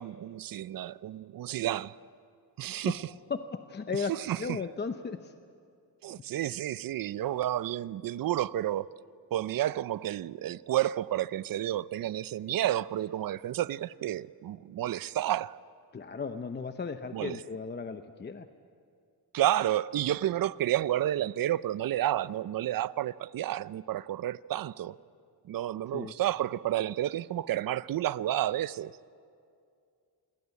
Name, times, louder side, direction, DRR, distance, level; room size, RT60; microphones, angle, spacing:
voice 1, 0.0-1.9 2.6-3.0 4.1-4.4 6.0-8.9 9.3-15.6 17.1-17.4 19.3-24.9 25.5-28.9, right 13 dB, 55° right, 0.6 m, -30 dB
voice 2, 3.3-4.1 4.4-5.3 15.9-18.5 25.9-26.1, left 5 dB, 25° left, 0.8 m, -35 dB
26.5 x 21.5 x 8.3 m
cardioid pair, 130°, 41 cm